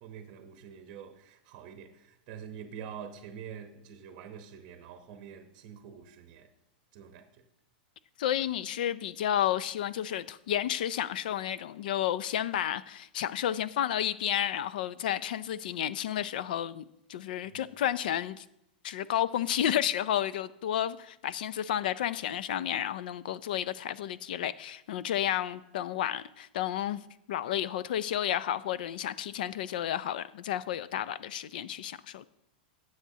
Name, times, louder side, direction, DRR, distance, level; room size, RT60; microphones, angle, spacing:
voice 1, 0.0-6.5 6.9-7.3 17.5-17.7, right 8 dB, 35° right, 0.9 m, -46 dB
voice 2, 8.2-16.8 17.1-18.4 18.8-27.0 27.3-32.3, left 11 dB, 60° left, 0.4 m, -31 dB
16.0 x 7.9 x 2.8 m
supercardioid pair, 170°, 5 cm